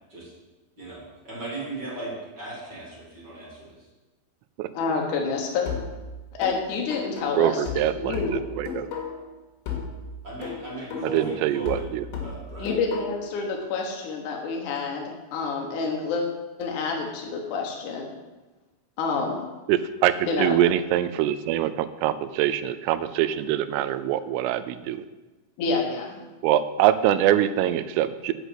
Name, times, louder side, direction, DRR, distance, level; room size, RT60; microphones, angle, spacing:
voice 1, 0.8-3.7 10.2-11.8 12.2-12.7, right 2 dB, 25° right, -6 dB, 3.1 m, -37 dB
voice 2, 4.7-5.7 6.4-7.6 8.0-8.4 12.6-16.2 16.6-18.1 19.0-19.4 20.3-20.6 25.6-26.2, left 4 dB, 85° left, 0 dB, 1.7 m, -28 dB
sound 1, 5.7-9.3 9.7-13.3, left 5 dB, 65° left, 4.0 m, -35 dB
voice 3, 7.4-8.9 11.0-12.1 19.7-20.1 20.4-25.1 26.4-28.3, right 12 dB, 90° right, 13 dB, 3.2 m, -24 dB
8.1 x 6.6 x 8.1 m, 1.1 s
omnidirectional pair, 5.7 m